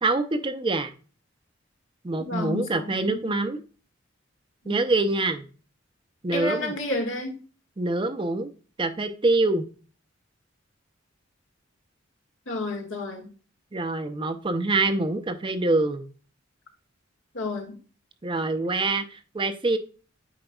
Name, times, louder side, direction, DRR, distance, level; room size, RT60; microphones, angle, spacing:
voice 1, 0.0-0.9 2.0-3.6 4.7-5.5 6.2-6.8 7.8-8.5 8.8-9.6 13.7-16.1 18.2-19.8, right 2 dB, 25° right, 0.5 m, -25 dB
voice 2, 2.2-3.2 4.6-4.8 6.3-7.3 12.5-13.3 17.3-17.7, left 2 dB, 75° left, 1.7 m, -31 dB
8.7 x 5.1 x 2.3 m
head